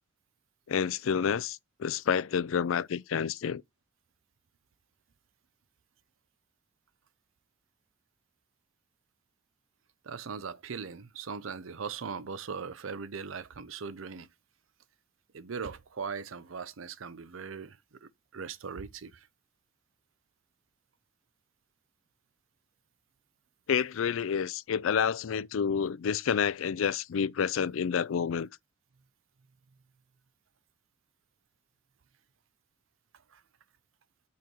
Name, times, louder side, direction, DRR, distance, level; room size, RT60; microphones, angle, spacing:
voice 1, 0.7-3.6 23.7-28.5, left 7 dB, 90° left, 0.4 m, -29 dB
voice 2, 10.0-14.3 15.3-19.3 33.3-33.4, right 5 dB, 85° right, 0.6 m, -39 dB
5.7 x 4.5 x 6.2 m
head